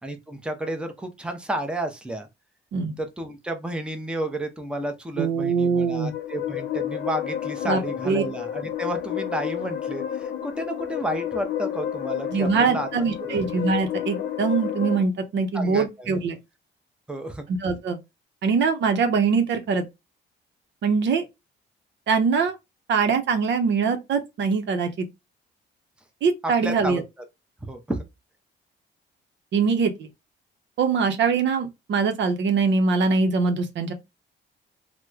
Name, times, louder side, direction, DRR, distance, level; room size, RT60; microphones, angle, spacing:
voice 1, 0.0-2.3 3.0-12.9 13.2-13.5 15.5-16.1 17.1-17.4 26.4-27.0 27.6-28.0, right 1 dB, 5° right, 0.7 m, -31 dB
voice 2, 5.2-6.1 7.7-8.2 12.3-16.4 17.5-18.0 18.4-19.8 20.8-21.3 22.1-22.5 22.9-25.1 26.2-27.0 29.5-30.1 30.8-33.9, right 5 dB, 65° right, 0.7 m, -23 dB
sound 1, 5.6-15.0, left 10 dB, 65° left, 0.4 m, -31 dB
3.0 x 2.1 x 3.5 m
cardioid pair, 90°, 20 cm